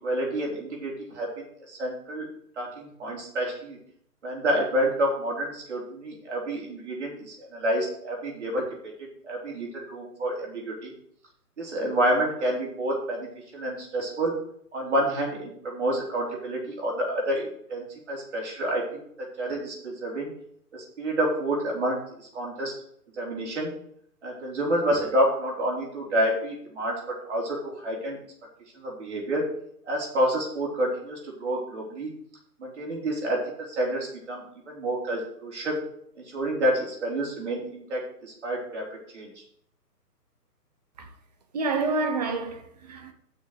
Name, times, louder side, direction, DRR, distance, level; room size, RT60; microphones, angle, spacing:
voice 1, 0.0-2.3 2.6-3.8 4.2-8.6 9.2-10.9 11.6-13.3 13.5-14.3 14.7-19.0 19.4-20.3 20.7-22.7 23.2-23.7 24.2-26.9 27.2-28.2 28.8-29.4 29.9-32.1 32.6-33.4 33.7-35.8 36.3-38.8 39.1-39.3, right 1 dB, 45° right, 4.1 m, -28 dB
voice 2, 41.5-43.1, right 3 dB, 25° right, 1.0 m, -28 dB
7.7 x 6.4 x 8.1 m
figure-of-eight pair, 135°, 48 cm